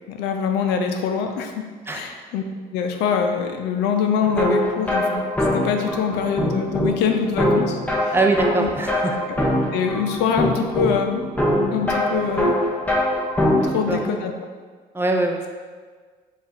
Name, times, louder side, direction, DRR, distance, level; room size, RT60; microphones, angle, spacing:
voice 1, 0.1-1.5 1.9-2.4 2.7-5.2 5.5-8.1 8.6-8.7 9.3-9.4 9.7-11.2 11.7-12.6 13.6-14.3, left 6 dB, 90° left, 5 dB, 0.5 m, -24 dB
sound 1, 4.2-14.0, left 1 dB, 10° left, 0.8 m, -23 dB
voice 2, 8.1-9.2 13.9-14.1 14.9-15.4, right 2 dB, 15° right, 2 dB, 0.5 m, -22 dB
4.6 x 2.4 x 4.4 m, 1.5 s
cardioid pair, 110°, 17 cm